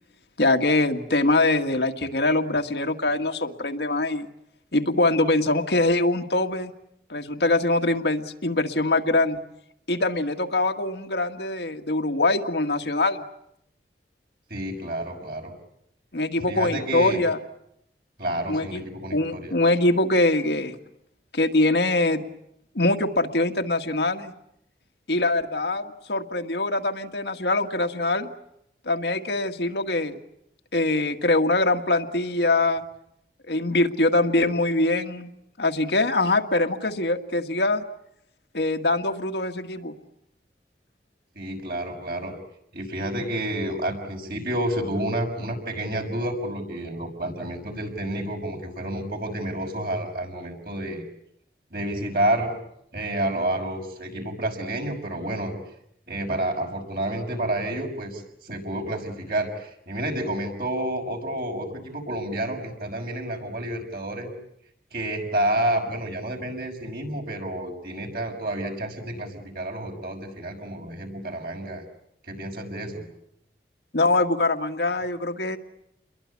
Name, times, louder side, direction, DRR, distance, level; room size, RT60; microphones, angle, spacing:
voice 1, 0.4-4.3 4.7-6.7 7.1-9.4 9.9-13.2 16.1-17.4 18.5-18.8 19.1-20.8 21.3-22.2 22.8-24.3 25.1-28.3 28.9-30.2 30.7-32.8 33.5-35.3 35.6-37.8 38.5-39.9 73.9-75.6, left 2 dB, 75° left, 5 dB, 1.8 m, -23 dB
voice 2, 14.5-15.5 16.5-17.2 18.2-19.5 41.3-42.3 42.7-51.0 51.7-52.5 52.9-55.6 56.1-64.3 64.9-71.8 72.3-73.1, right 1 dB, 55° right, 3 dB, 6.1 m, -29 dB
29.5 x 22.5 x 8.5 m, 0.77 s
head